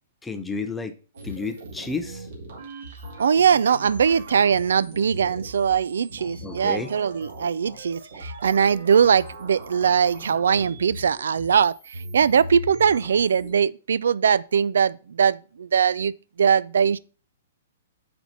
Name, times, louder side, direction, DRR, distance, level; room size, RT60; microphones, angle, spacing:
voice 1, 0.2-1.0 1.2-2.3 6.4-6.9, left 4 dB, 5° left, 0.5 m, -31 dB
sound 1, 1.1-13.5, right 1 dB, 55° right, 2.5 m, -40 dB
voice 2, 3.2-16.1 16.4-17.0, right 7 dB, 85° right, 0.4 m, -21 dB
9.1 x 4.4 x 4.1 m
hypercardioid pair, 175°, 0 cm